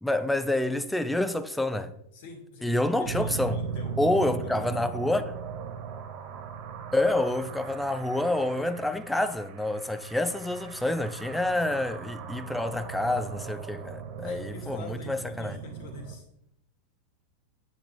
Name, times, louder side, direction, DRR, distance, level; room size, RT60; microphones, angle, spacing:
voice 1, 0.0-1.9 2.6-3.6 4.0-5.3 6.9-15.6, left 1 dB, 5° left, 0.6 m, -28 dB
voice 2, 2.1-4.8 14.2-16.2, left 3 dB, 50° left, 2.2 m, -44 dB
sound 1, 3.0-16.2, right 7 dB, 45° right, 0.8 m, -39 dB
8.6 x 7.8 x 3.4 m
figure-of-eight pair, 90°, 0 cm